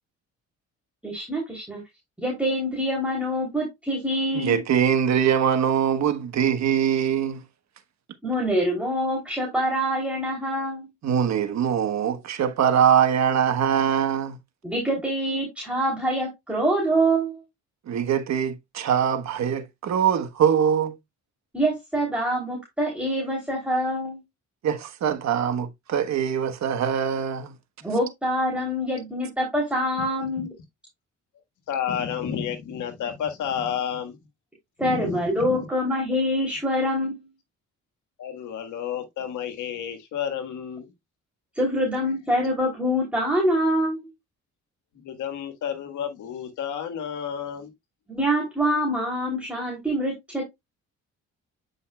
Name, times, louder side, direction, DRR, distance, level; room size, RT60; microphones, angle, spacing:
voice 1, 1.0-1.8 2.2-4.6 8.2-10.9 14.6-17.4 21.5-24.2 27.8-30.5 34.8-37.3 41.5-44.1 48.1-50.4, equal, 5° right, 3.0 m, -25 dB
voice 2, 4.3-7.4 11.0-14.4 17.9-21.0 24.6-27.5, right 8 dB, 65° right, 1.2 m, -23 dB
voice 3, 31.7-34.2 34.8-35.6 38.2-40.9 44.9-47.7, left 8 dB, 80° left, 1.6 m, -31 dB
8.5 x 5.4 x 2.3 m
cardioid pair, 90°, 30 cm